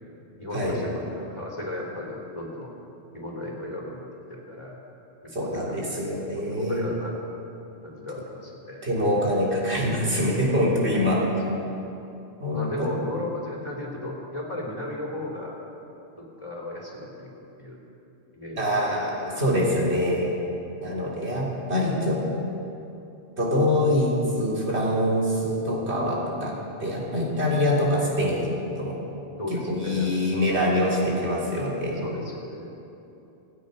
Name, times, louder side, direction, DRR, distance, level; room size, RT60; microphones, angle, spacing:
voice 1, 0.4-2.7 3.1-4.0 4.3-4.8 5.2-6.1 6.5-7.2 7.8-8.9 11.1-11.6 12.5-15.6 16.2-17.3 17.6-17.8 18.3-18.8 19.2-19.5 19.9-20.0 20.8-21.0 26.3-26.5 29.4-30.9 31.9-32.7, left 1 dB, 25° left, -2 dB, 3.2 m, -36 dB
voice 2, 5.3-6.8 8.8-11.2 12.4-12.9 18.6-20.4 20.8-22.2 23.4-26.5 26.8-28.5 28.8-29.0 29.5-32.0, left 1 dB, 85° right, -4 dB, 3.5 m, -24 dB
26.0 x 9.7 x 5.4 m, 2.9 s
omnidirectional pair, 1.1 m